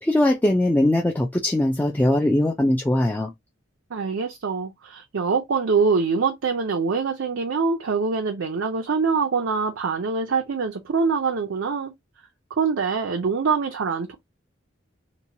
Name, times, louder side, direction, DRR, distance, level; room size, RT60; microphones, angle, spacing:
voice 1, 0.0-3.3, left 1 dB, 10° left, 0.3 m, -21 dB
voice 2, 3.9-11.9 12.6-14.1, right 5 dB, 75° right, 0.5 m, -24 dB
3.0 x 2.2 x 2.6 m
head